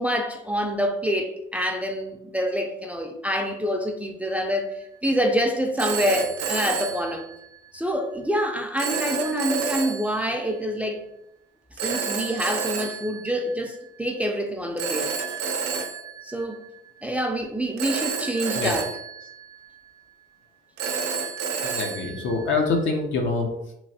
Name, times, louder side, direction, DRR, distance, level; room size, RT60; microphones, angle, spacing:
voice 1, 0.0-4.7 5.0-7.2 7.7-11.1 11.8-15.1 16.2-16.6 17.0-18.9, equal, 5° right, 0.3 m, -26 dB
Telephone, 4.6-4.8 5.8-7.8 8.8-10.5 11.8-14.0 14.8-17.1 17.8-20.1 20.8-23.0, right 6 dB, 75° right, 0.5 m, -31 dB
voice 2, 21.6-23.7, left 3 dB, 70° left, 0.6 m, -25 dB
3.1 x 2.3 x 2.7 m
cardioid pair, 90°, 20 cm